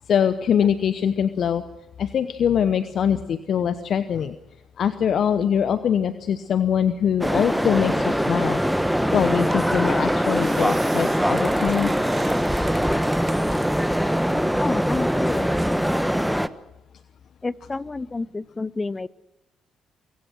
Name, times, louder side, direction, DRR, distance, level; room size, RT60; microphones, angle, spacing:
voice 1, 0.1-1.6 2.0-4.4 4.8-8.6 9.1-11.9, left 8 dB, 60° left, 12 dB, 0.9 m, -23 dB
sound 1, 7.2-16.5, equal, ahead, 1.1 m, -22 dB
sound 2, 9.5-9.7 10.1-13.7 14.2-14.9, right 5 dB, 40° right, 1.4 m, -41 dB
voice 2, 14.6-15.6 17.4-19.1, left 3 dB, 25° left, 19 dB, 0.8 m, -29 dB
24.5 x 22.0 x 6.2 m, 0.94 s
hypercardioid pair, 45°, 0 cm